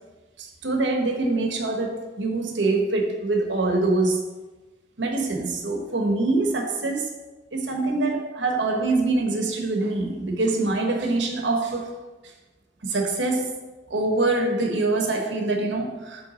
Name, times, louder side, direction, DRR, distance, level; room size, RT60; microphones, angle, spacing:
voice 1, 0.4-4.2 5.0-7.2 7.5-11.9 12.8-13.5 13.9-16.3, right 2 dB, 80° right, 2 dB, 1.0 m, -24 dB
7.9 x 3.4 x 4.1 m, 1.2 s
head